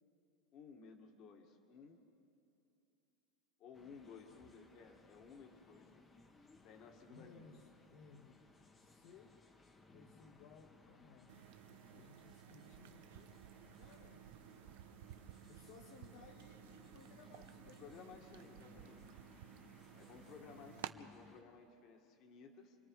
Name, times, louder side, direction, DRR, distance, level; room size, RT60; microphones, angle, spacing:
voice 1, 0.5-2.1 3.6-6.1 6.6-7.6 17.8-19.2 19.9-22.8, left 5 dB, 40° left, 3 dB, 1.8 m, -57 dB
sound 1, 3.7-21.4, left 3 dB, 15° left, 1.1 m, -64 dB
voice 2, 7.1-8.4 8.7-9.4 9.9-13.4 13.8-14.3 15.5-18.0 20.4-20.5, left 5 dB, 60° left, 0 dB, 1.6 m, -62 dB
sound 2, 11.3-20.9, right 14 dB, 85° right, 0.7 m, -56 dB
Fill (with liquid), 11.5-19.6 21.0-21.1, right 12 dB, 55° right, 0.8 m, -59 dB
28.5 x 23.0 x 4.8 m, 2.7 s
supercardioid pair, 155°, 0 cm